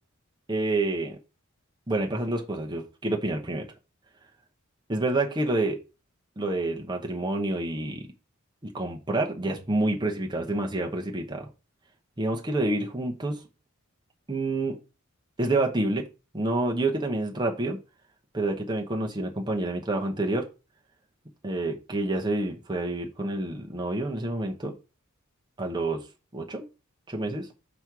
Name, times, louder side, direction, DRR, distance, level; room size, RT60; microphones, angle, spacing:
voice 1, 0.5-1.2 1.9-3.7 4.9-5.8 6.4-8.0 8.6-11.5 12.2-13.4 14.3-14.8 15.4-16.0 16.3-17.8 18.3-20.5 21.4-24.7 25.6-26.0 26.3-26.6 27.1-27.5, right 2 dB, 20° right, 1 dB, 0.8 m, -28 dB
6.0 x 4.2 x 4.7 m, 0.30 s
head